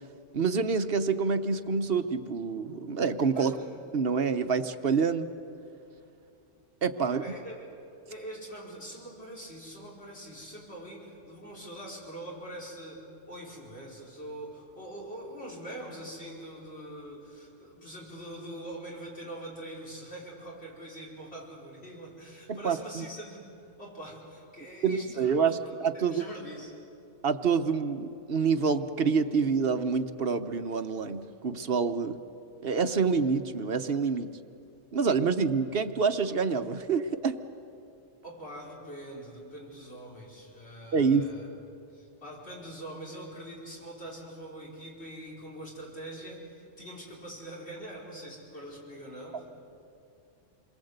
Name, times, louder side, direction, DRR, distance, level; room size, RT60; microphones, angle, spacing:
voice 1, 0.3-3.5 3.9-5.3 6.8-7.2 22.5-23.0 24.8-26.2 27.2-32.2 32.6-34.4 34.9-37.4 40.9-41.3, right 5 dB, 55° right, 9 dB, 1.1 m, -27 dB
voice 2, 3.3-3.8 7.0-7.7 8.1-26.8 38.2-41.5 41.9-49.5, right 1 dB, 60° left, -3 dB, 5.0 m, -43 dB
27.5 x 22.5 x 8.0 m, 2.6 s
omnidirectional pair, 1.3 m